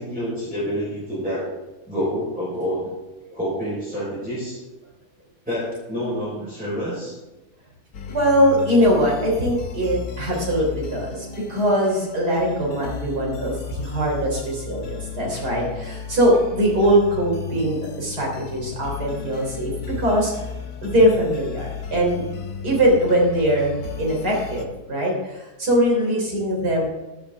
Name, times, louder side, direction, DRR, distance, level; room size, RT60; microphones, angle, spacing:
voice 1, 0.0-1.5 1.9-2.9 3.3-4.6 5.5-7.1, equal, 5° right, -8 dB, 4.2 m, -27 dB
sound 1, 7.9-24.7, left 5 dB, 70° left, 1.6 m, -35 dB
voice 2, 8.1-19.7 20.0-20.3 20.8-22.2 22.6-26.9, equal, 80° right, -2 dB, 4.0 m, -21 dB
15.0 x 10.0 x 3.5 m, 1.1 s
omnidirectional pair, 1.7 m